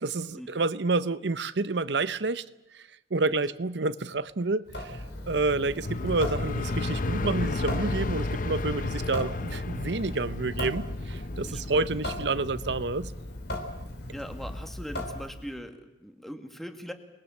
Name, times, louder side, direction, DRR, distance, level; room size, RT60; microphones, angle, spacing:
voice 1, 0.0-2.4 2.7-2.8 3.1-13.1, right 3 dB, 70° right, 0.8 m, -29 dB
Water tap faucet / Sink (filling or washing) / Drip, 4.7-15.6, left 1 dB, 65° left, 3.7 m, -38 dB
sound 1, 5.8-14.7, left 2 dB, 50° left, 0.8 m, -33 dB
voice 2, 11.4-11.9 14.1-16.9, equal, ahead, 2.1 m, -41 dB
28.0 x 21.5 x 7.3 m
head